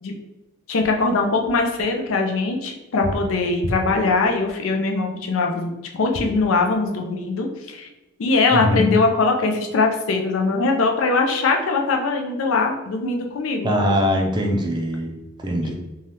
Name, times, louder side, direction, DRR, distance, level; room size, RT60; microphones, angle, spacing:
voice 1, 0.7-5.7 6.0-7.9 8.2-13.7 15.6-15.7, left 3 dB, 85° left, 2 dB, 0.5 m, -21 dB
voice 2, 8.5-8.9 13.6-15.1 15.4-15.7, equal, 20° right, 1 dB, 0.4 m, -21 dB
2.7 x 2.3 x 3.3 m, 1.0 s
head